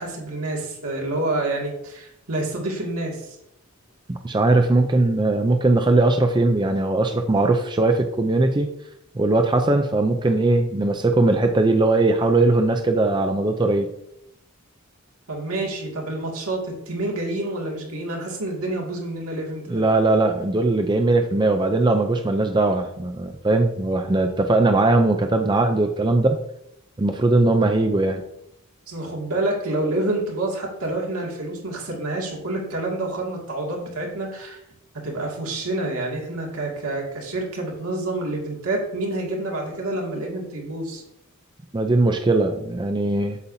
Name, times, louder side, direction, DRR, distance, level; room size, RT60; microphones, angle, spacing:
voice 1, 0.0-3.4 15.3-19.8 28.9-34.6 35.0-41.0, right 2 dB, 85° right, -1 dB, 2.2 m, -28 dB
voice 2, 4.1-8.7 9.1-13.9 19.7-26.4 27.0-28.3 41.7-43.4, right 2 dB, 20° right, 5 dB, 0.4 m, -20 dB
8.1 x 7.2 x 2.7 m, 0.80 s
head